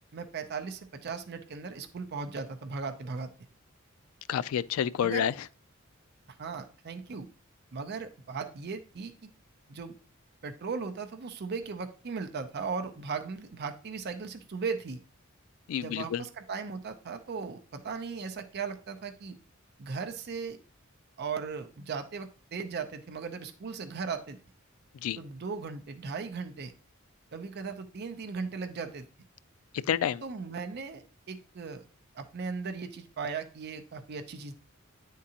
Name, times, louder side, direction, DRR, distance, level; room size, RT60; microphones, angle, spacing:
voice 1, 0.1-3.3 5.0-5.3 6.3-7.3 7.7-9.1 9.7-10.0 10.4-15.0 15.8-19.4 19.8-20.6 21.2-24.4 25.2-26.7 27.3-29.0 30.2-31.9 32.1-34.5, right 5 dB, 50° right, 0.5 m, -37 dB
voice 2, 4.3-5.3 15.7-16.2 25.0-25.2 29.9-30.2, left 9 dB, 80° left, 0.3 m, -29 dB
9.4 x 3.7 x 2.8 m
head